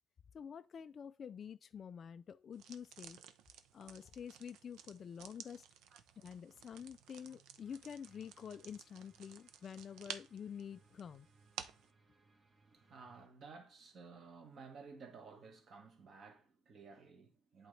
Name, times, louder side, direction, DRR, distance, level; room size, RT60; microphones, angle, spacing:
voice 1, 0.3-3.2 3.7-5.6 6.2-11.3, left 7 dB, 30° left, 0.3 m, -48 dB
sound 1, 2.5-11.9, right 8 dB, 70° right, 0.7 m, -54 dB
voice 2, 6.2-6.7 12.3-17.7, right 4 dB, 35° right, 1.3 m, -56 dB
sound 2, 7.6-13.3, right 3 dB, 15° right, 0.7 m, -70 dB
11.0 x 3.9 x 3.2 m
cardioid pair, 175°, 0 cm